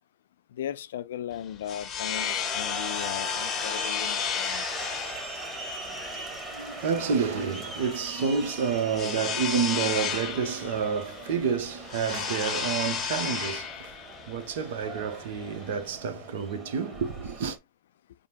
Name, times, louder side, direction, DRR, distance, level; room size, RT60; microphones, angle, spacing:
voice 1, 0.6-4.7, left 11 dB, 75° left, 0.3 m, -37 dB
sound 1, 1.3-15.9, left 8 dB, 30° left, 0.7 m, -33 dB
sound 2, 2.1-17.6, right 1 dB, 15° right, 1.3 m, -40 dB
voice 2, 5.8-17.6, right 6 dB, 70° right, 0.8 m, -29 dB
5.0 x 2.1 x 2.8 m
hypercardioid pair, 115°, 0 cm